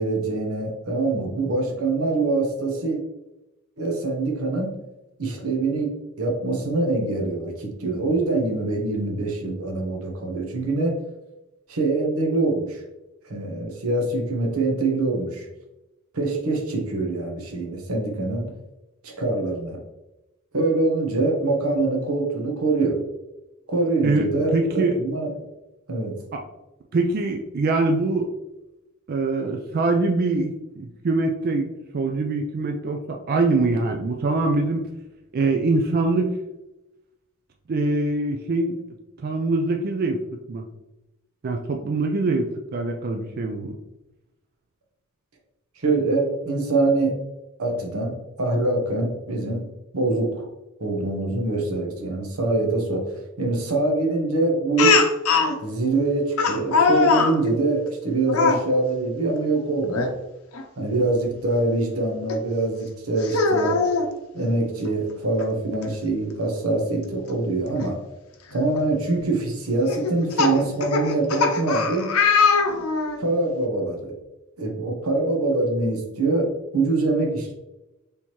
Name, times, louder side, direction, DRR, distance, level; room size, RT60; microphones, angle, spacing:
voice 1, 0.0-3.0 3.8-4.7 5.2-5.9 6.2-10.9 11.7-12.8 13.2-15.5 16.1-18.5 19.0-19.8 20.5-23.0 23.7-24.5 25.0-25.3 25.9-26.1 45.8-47.2 47.6-49.6 49.9-50.5 50.8-55.0 55.6-60.1 60.8-63.8 64.3-68.0 68.5-72.1 73.2-74.1 74.6-77.5, right 2 dB, 90° right, 2 dB, 1.0 m, -24 dB
voice 2, 24.0-25.0 26.9-28.3 29.1-31.7 31.9-34.8 35.3-36.4 37.7-38.8 39.2-40.2 40.5-40.6 41.4-43.8, right 3 dB, 45° right, 3 dB, 0.4 m, -23 dB
Speech, 54.8-55.5 56.4-57.3 58.3-58.6 59.9-60.1 60.5-60.6 62.3-62.4 63.2-64.1 65.4-65.5 65.8-65.9 67.8-67.9 68.5-68.8 69.9-73.2, left 4 dB, 80° left, 0.6 m, -21 dB
4.4 x 3.5 x 2.9 m, 0.97 s
head